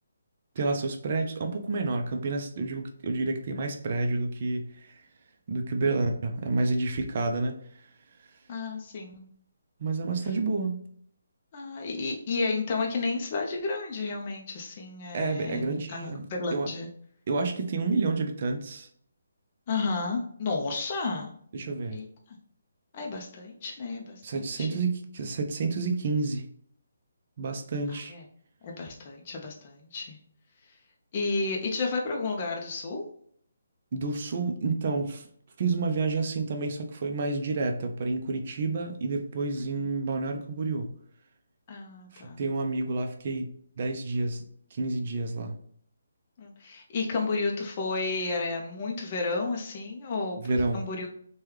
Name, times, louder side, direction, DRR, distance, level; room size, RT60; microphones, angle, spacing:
voice 1, 0.6-5.0 5.5-7.6 9.8-10.8 15.1-16.2 16.5-16.7 17.3-18.9 21.5-22.0 24.2-26.4 27.4-28.1 33.9-35.3 35.6-40.9 42.1-45.6 50.4-50.8, right 3 dB, 45° right, 4 dB, 0.4 m, -29 dB
voice 2, 8.5-9.3 11.5-16.9 19.7-21.3 21.9-22.4 22.9-24.8 27.9-28.2 28.6-30.2 31.1-33.1 41.7-42.4 46.4-50.4 50.7-51.1, left 3 dB, 35° left, 0 dB, 0.5 m, -32 dB
3.3 x 2.2 x 3.1 m, 0.62 s
hypercardioid pair, 160°, 0 cm